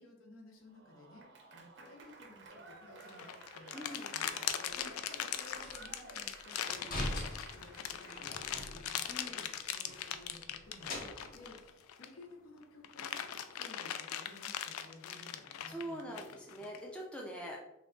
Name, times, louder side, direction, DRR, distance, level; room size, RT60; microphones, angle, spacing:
voice 1, 0.0-13.2 13.6-16.7, left 1 dB, 75° left, 1 dB, 0.7 m, -56 dB
Applause / Crowd, 0.7-8.8, right 3 dB, 55° right, 0.5 m, -55 dB
sound 1, 3.0-12.2 12.6-16.8, left 9 dB, 90° left, 0.3 m, -40 dB
voice 2, 3.7-4.1 4.7-4.9 9.1-9.5 15.7-17.6, equal, 5° left, -2 dB, 0.4 m, -44 dB
sound 2, 4.7-4.8 5.6-5.9 6.5-9.2 9.5-9.6 9.8-11.5, left 1 dB, 40° left, 0.7 m, -43 dB
3.5 x 2.2 x 3.6 m, 0.87 s
head